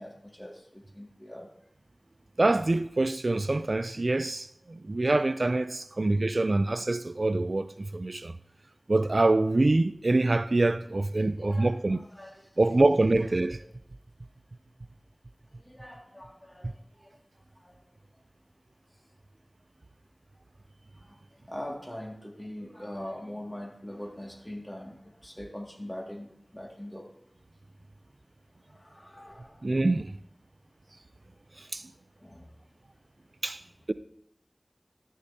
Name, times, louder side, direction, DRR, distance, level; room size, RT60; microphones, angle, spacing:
voice 1, 0.0-1.5 5.9-6.1 11.1-12.5 15.6-16.7 17.0-17.1 17.6-17.7 21.0-21.2 21.5-27.1 28.7-29.7 32.2-32.5 33.6-33.7, left 1 dB, 15° left, 2.1 m, -42 dB
voice 2, 2.4-8.3 8.9-12.0 12.6-13.6 29.6-30.1 31.7-31.8 33.4-33.6, right 2 dB, 65° right, 0.3 m, -25 dB
12.0 x 10.0 x 2.7 m
wide cardioid pair, 45°, 0 cm